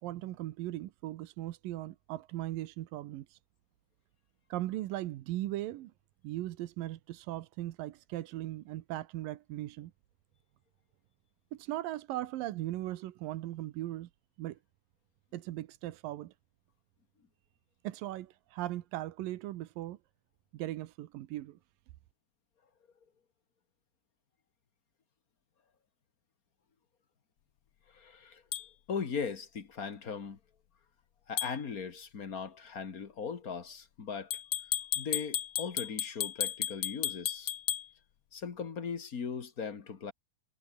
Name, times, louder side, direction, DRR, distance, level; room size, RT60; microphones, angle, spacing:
voice 1, 0.0-3.4 4.5-5.9 6.2-9.9 11.5-14.1 14.4-14.6 15.3-16.3 17.8-20.0 20.5-21.6, right 15 dB, 85° right, 2.7 m, -38 dB
voice 2, 27.9-28.4 28.9-30.4 31.3-34.3 34.9-37.5 38.3-40.1, left 6 dB, 40° left, 1.4 m, -38 dB
sound 1, 28.5-28.7 31.4-31.6 34.3-37.9, left 11 dB, 75° left, 1.1 m, -34 dB
omnidirectional pair, 4.0 m